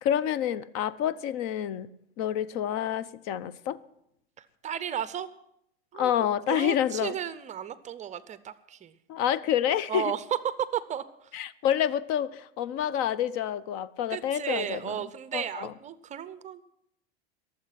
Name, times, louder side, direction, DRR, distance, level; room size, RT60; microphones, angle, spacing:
voice 1, 0.0-1.9 2.2-3.8 5.9-7.1 9.1-10.1 11.3-15.0 15.3-15.7, left 10 dB, 50° left, 0.7 m, -28 dB
voice 2, 4.4-5.3 5.9-6.1 6.5-8.9 9.9-11.3 14.1-16.6, right 9 dB, 25° right, 0.6 m, -34 dB
22.5 x 7.6 x 5.8 m
supercardioid pair, 125°, 30 cm